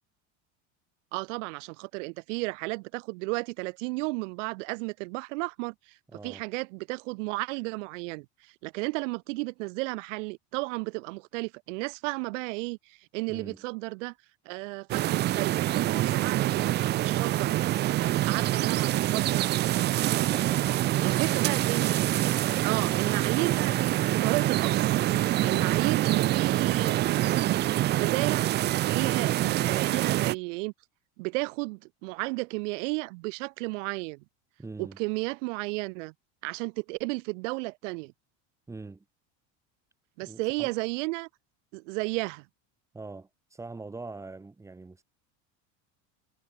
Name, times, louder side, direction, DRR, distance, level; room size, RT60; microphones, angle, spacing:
voice 1, 1.1-6.0 6.2-14.1 14.5-17.6 17.9-19.4 21.0-21.9 22.2-22.3 22.6-25.0 25.4-27.7 28.0-28.5 28.8-30.7 31.2-34.2 34.8-36.1 36.4-38.1 40.2-41.3 41.7-42.4, right 27 dB, 80° right, 1.9 m, -33 dB
voice 2, 6.1-6.5 13.3-13.6 20.2-21.4 25.4-25.8 34.6-35.0 38.7-39.0 40.2-40.7 42.9-45.0, right 3 dB, 10° right, 4.7 m, -43 dB
sound 1, 14.9-30.4, right 15 dB, 30° right, 0.7 m, -26 dB
cardioid pair, 180°, 36 cm